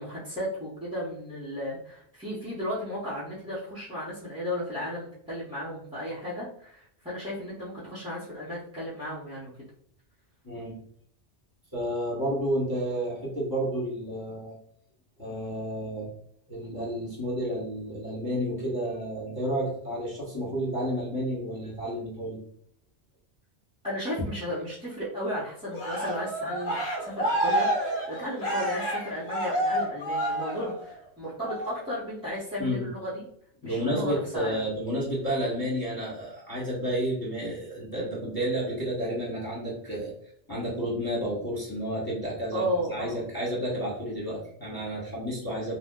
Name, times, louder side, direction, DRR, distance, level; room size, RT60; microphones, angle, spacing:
voice 1, 0.0-9.5 23.8-33.2 33.6-34.6 42.5-43.2, equal, 5° right, -11 dB, 0.7 m, -34 dB
voice 2, 10.4-10.8 11.7-14.6 15.2-16.1 16.5-22.4 32.6-32.9 33.6-40.1 40.5-45.8, equal, 20° left, -7 dB, 0.9 m, -31 dB
Cheering, 25.7-31.0 31.4-31.8, right 1 dB, 65° left, 1.2 m, -29 dB
2.7 x 2.0 x 3.5 m, 0.68 s
omnidirectional pair, 1.2 m